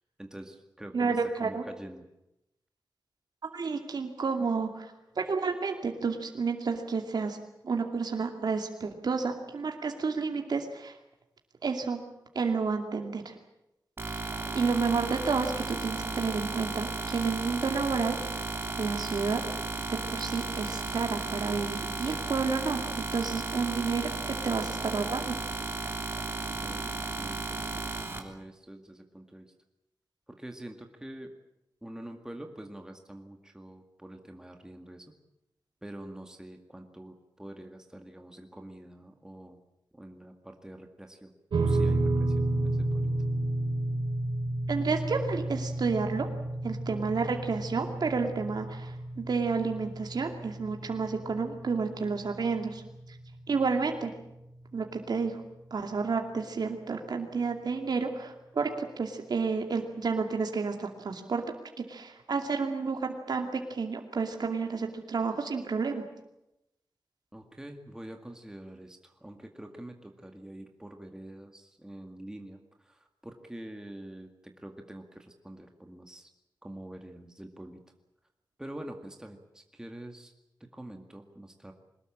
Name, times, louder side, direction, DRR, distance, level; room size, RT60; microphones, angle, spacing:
voice 1, 0.2-1.2 1.4-2.1 26.6-29.5 30.3-31.3 31.8-35.1 35.8-39.6 39.9-41.3 41.6-43.1 67.3-76.3 76.6-77.8 78.6-80.3 80.7-81.7, right 1 dB, 10° right, 4 dB, 2.0 m, -46 dB
voice 2, 0.9-1.6 3.4-7.4 7.6-11.0 11.6-12.0 12.3-13.4 14.1-18.4 18.8-19.4 19.9-25.3 44.7-46.3 46.6-52.8 53.1-53.2 53.5-54.1 54.7-55.4 55.7-61.4 61.9-66.1, right 4 dB, 65° right, 4 dB, 2.5 m, -31 dB
sound 1, 14.0-28.2, right 3 dB, 30° right, 3.1 m, -34 dB
sound 2, 41.5-54.0, right 2 dB, 90° right, 3.3 m, -32 dB
22.5 x 20.0 x 8.8 m, 0.87 s
wide cardioid pair, 135°, 7 cm